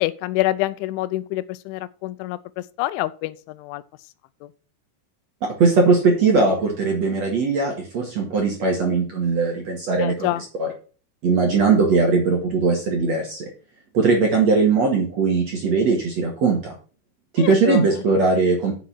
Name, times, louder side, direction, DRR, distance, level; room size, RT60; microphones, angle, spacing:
voice 1, 0.0-3.8 4.4-4.5 10.0-10.4 17.4-17.8, left 17 dB, 85° left, 3.1 m, -26 dB
voice 2, 5.4-10.3 10.6-10.7 11.2-13.5 13.9-16.7 17.3-18.7, right 4 dB, 50° right, 2.2 m, -19 dB
7.7 x 7.3 x 6.0 m
omnidirectional pair, 5.5 m